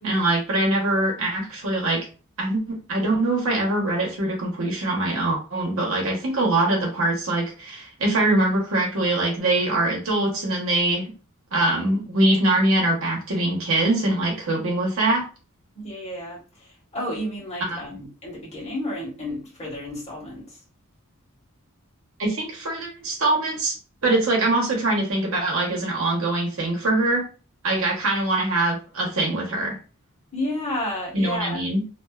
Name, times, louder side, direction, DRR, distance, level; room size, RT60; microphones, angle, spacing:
voice 1, 0.0-2.1 2.4-11.1 11.5-15.2 17.6-17.8 22.2-23.8 24.0-27.2 27.6-29.8 31.1-31.8, right 2 dB, 65° right, -1 dB, 0.9 m, -23 dB
voice 2, 15.7-20.6 30.3-31.6, left 1 dB, 30° left, -4 dB, 1.2 m, -31 dB
2.6 x 2.3 x 2.3 m, 0.35 s
head